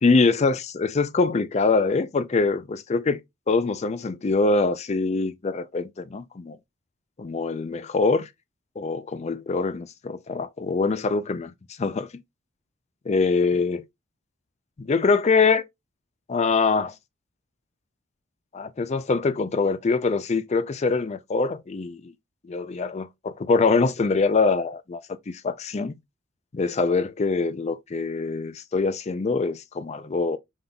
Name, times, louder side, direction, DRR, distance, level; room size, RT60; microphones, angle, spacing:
voice 1, 0.0-3.2 3.5-6.6 7.2-8.3 8.8-11.5 11.8-12.1 13.1-13.8 14.8-15.6 16.3-16.9 18.5-22.1 22.5-25.0 25.3-26.0 26.5-30.4, left 4 dB, 35° left, 0.4 m, -24 dB
5.2 x 3.9 x 2.3 m
head